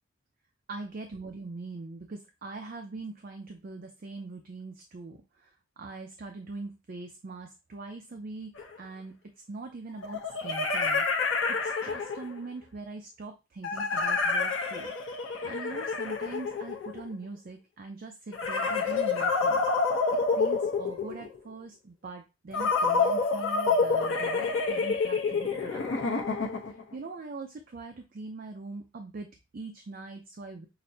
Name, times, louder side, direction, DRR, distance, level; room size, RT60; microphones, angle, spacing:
voice 1, 0.7-5.5 5.8-9.1 9.5-19.7 20.4-26.1 26.9-30.7, right 3 dB, 45° right, 5 dB, 0.4 m, -42 dB
sound 1, 8.6-8.7 10.0-12.4 13.6-17.1 18.3-21.4 22.5-26.8, left 4 dB, 75° left, 0.8 m, -28 dB
5.8 x 2.1 x 2.7 m, 0.26 s
head